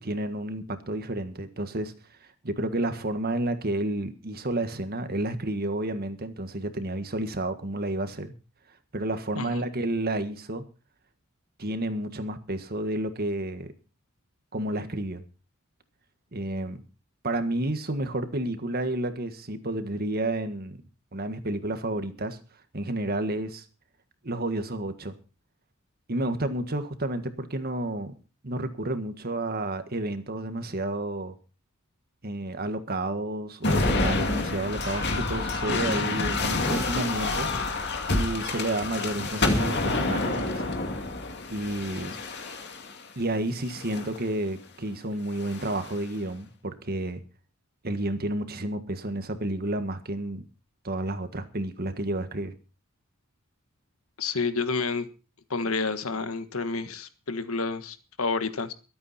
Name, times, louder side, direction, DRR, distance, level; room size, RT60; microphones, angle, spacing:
voice 1, 0.0-1.9 2.4-8.3 8.9-10.6 11.6-13.7 14.5-15.2 16.3-16.8 17.2-20.8 21.1-22.4 22.7-23.6 24.2-25.1 26.1-28.1 28.4-31.3 32.2-37.5 38.1-40.6 41.5-42.1 43.1-47.2 47.8-50.5 50.8-52.5, right 1 dB, 45° right, 1.6 m, -30 dB
sound 1, 33.6-43.0 43.7-44.2 45.3-46.0, left 2 dB, 55° left, 2.4 m, -28 dB
voice 2, 54.2-55.0 55.5-58.7, left 4 dB, 75° left, 1.5 m, -30 dB
22.5 x 8.8 x 4.3 m
head